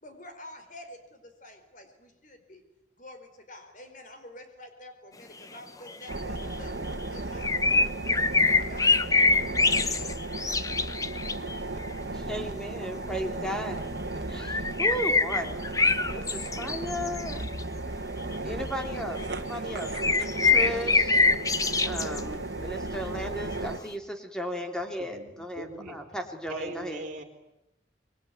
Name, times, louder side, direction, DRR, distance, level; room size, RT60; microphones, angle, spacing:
voice 1, 0.0-2.6 3.0-6.8 7.1-9.1, left 1 dB, 45° left, 7 dB, 4.7 m, -48 dB
sound 1, 5.9-6.5 7.4-11.6 14.4-17.6 18.3-18.4 19.0-19.3 19.7-22.2 23.5-23.6, left 4 dB, 20° left, 0.9 m, -24 dB
sound 2, 6.1-23.8, right 2 dB, 80° right, 1.7 m, -35 dB
voice 2, 12.1-13.8 14.3-15.6 16.1-17.4 18.4-21.2 21.8-27.0, equal, 5° left, 5 dB, 3.0 m, -35 dB
voice 3, 25.0-26.0 26.5-27.2, right 2 dB, 45° right, 1 dB, 4.6 m, -39 dB
25.0 x 23.0 x 9.5 m, 0.90 s
head